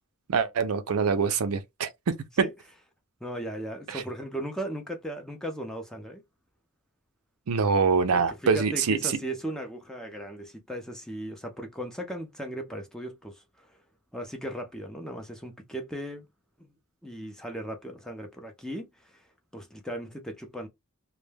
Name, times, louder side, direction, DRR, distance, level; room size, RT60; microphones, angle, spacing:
voice 1, 0.3-2.5 3.9-4.0 7.5-9.2, right 5 dB, 80° right, 0.5 m, -25 dB
voice 2, 3.2-6.2 8.1-13.8 14.1-16.3 16.6-16.7 17.0-19.3 19.5-20.7, right 1 dB, 5° left, 0.4 m, -37 dB
2.1 x 2.1 x 3.2 m
head